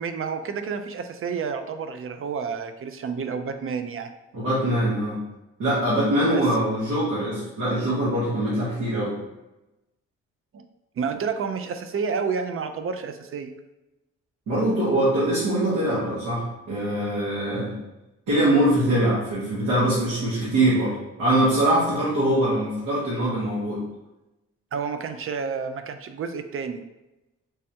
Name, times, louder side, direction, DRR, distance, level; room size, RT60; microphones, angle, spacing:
voice 1, 0.0-4.1 6.2-6.4 10.5-10.6 11.0-13.5 24.7-26.8, right 5 dB, 45° right, 8 dB, 0.5 m, -30 dB
voice 2, 4.3-5.2 5.6-9.1 14.5-17.7 18.3-23.8, right 1 dB, 80° right, -10 dB, 1.3 m, -23 dB
3.4 x 3.2 x 2.7 m, 0.98 s
supercardioid pair, 45°, 31 cm